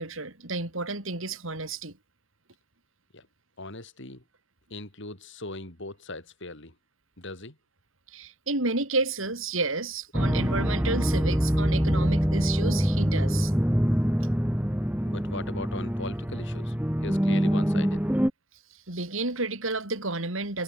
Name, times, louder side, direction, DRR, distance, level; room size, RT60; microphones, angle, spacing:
voice 1, 0.0-1.9 8.1-13.5 18.7-20.6, right 3 dB, 65° right, 4.1 m, -31 dB
voice 2, 3.6-4.2 4.7-6.7 7.2-7.6 15.0-16.7 17.0-18.0, left 2 dB, 60° left, 4.7 m, -39 dB
sound 1, 10.1-18.3, equal, 5° right, 1.8 m, -25 dB
head